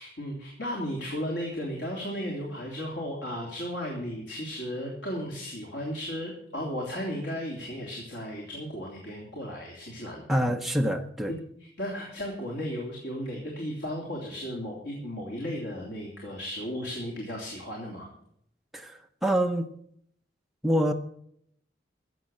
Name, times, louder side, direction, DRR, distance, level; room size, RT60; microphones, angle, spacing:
voice 1, 0.0-10.4 11.3-18.1, equal, 85° left, -1 dB, 3.1 m, -35 dB
voice 2, 10.3-11.3 18.7-19.7 20.6-20.9, equal, ahead, 3 dB, 0.7 m, -26 dB
14.5 x 7.6 x 7.6 m, 0.69 s
head